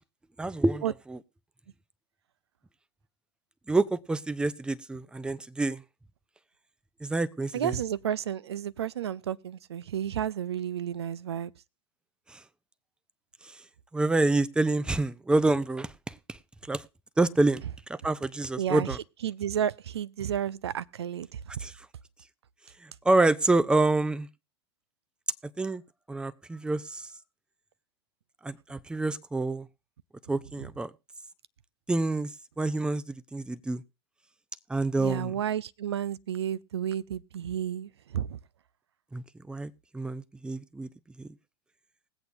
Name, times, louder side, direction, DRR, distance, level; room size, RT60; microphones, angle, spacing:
voice 1, 0.4-1.2 3.7-5.8 7.0-7.8 12.3-12.4 13.4-13.6 13.9-16.4 16.7-16.9 17.2-17.6 17.9-19.0 21.6-21.9 22.8-24.3 25.6-25.8 26.1-27.1 28.4-29.7 30.3-30.9 31.9-33.8 34.7-35.4 39.1-40.9 41.2-41.3, right 2 dB, 5° right, 0.5 m, -27 dB
voice 2, 7.5-11.5 18.6-18.9 19.2-21.3 35.0-38.4, right 9 dB, 80° right, 0.4 m, -31 dB
20.5 x 8.0 x 2.5 m
hypercardioid pair, 100°, 14 cm